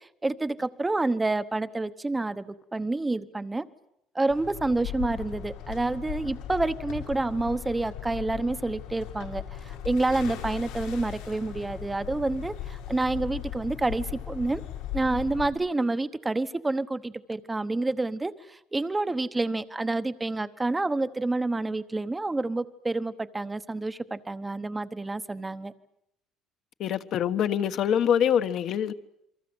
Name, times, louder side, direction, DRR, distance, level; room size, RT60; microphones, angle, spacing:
voice 1, 0.2-3.7 4.1-14.6 14.9-25.7, right 2 dB, 10° right, 1.0 m, -28 dB
sound 1, 4.3-15.5, left 11 dB, 90° left, 7.0 m, -38 dB
voice 2, 26.8-28.9, left 9 dB, 50° left, 1.4 m, -24 dB
28.5 x 23.5 x 8.0 m
cardioid pair, 150°, 0 cm